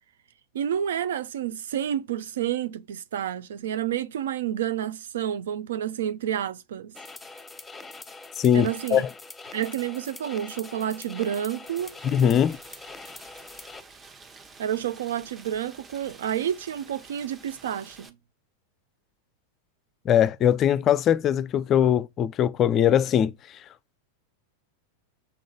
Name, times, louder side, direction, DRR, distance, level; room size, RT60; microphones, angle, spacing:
voice 1, 0.5-6.9 8.5-9.0 9.5-12.0 14.6-18.1, right 10 dB, 60° right, 0.7 m, -29 dB
sound 1, 6.9-13.8, left 3 dB, 10° left, 1.0 m, -43 dB
voice 2, 8.4-9.1 12.0-12.6 20.1-23.6, left 9 dB, 30° left, 0.4 m, -21 dB
Rain, 11.7-18.1, right 4 dB, 20° right, 1.2 m, -50 dB
7.0 x 3.9 x 5.1 m
figure-of-eight pair, 90°, 0 cm